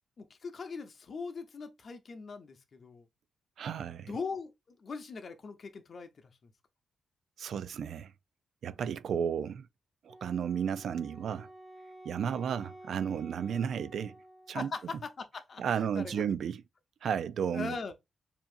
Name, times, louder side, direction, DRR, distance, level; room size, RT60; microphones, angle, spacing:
voice 1, 0.2-3.1 4.1-6.5 12.2-12.3 14.5-16.3 17.5-17.9, left 4 dB, 40° left, 0.9 m, -41 dB
voice 2, 3.6-4.1 7.4-8.1 8.6-9.7 10.0-11.5 12.0-14.1 14.5-14.7 15.6-16.6 17.0-17.8, right 8 dB, 70° right, 0.3 m, -33 dB
Wind instrument woodwind instrument, 10.1-14.9, right 1 dB, 5° left, 1.9 m, -52 dB
6.9 x 2.8 x 2.6 m
wide cardioid pair, 150°, 0 cm